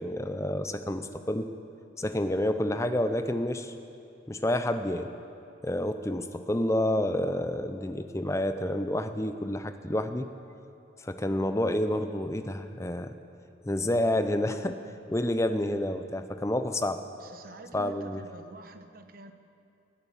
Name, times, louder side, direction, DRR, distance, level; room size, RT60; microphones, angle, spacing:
voice 1, 0.0-1.5 2.0-3.7 4.3-5.1 5.6-10.3 11.0-13.1 13.6-14.8 15.1-17.0 17.7-18.2, left 1 dB, 15° left, 9 dB, 0.6 m, -29 dB
voice 2, 17.2-19.3, right 1 dB, 50° right, 7 dB, 1.0 m, -47 dB
18.0 x 10.5 x 7.2 m, 2.5 s
head